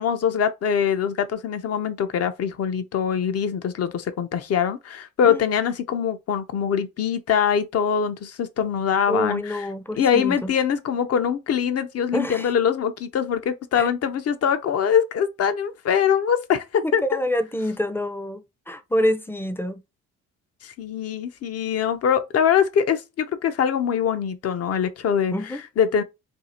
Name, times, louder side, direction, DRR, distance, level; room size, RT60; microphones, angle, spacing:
voice 1, 0.0-9.7 9.9-17.0 20.6-25.3 25.8-26.0, left 8 dB, 55° left, 0.6 m, -23 dB
voice 2, 9.1-10.5 12.1-12.5 13.8-13.9 16.8-19.8 25.3-25.6, equal, 10° left, 0.4 m, -27 dB
2.7 x 2.4 x 4.2 m
cardioid pair, 90°, 30 cm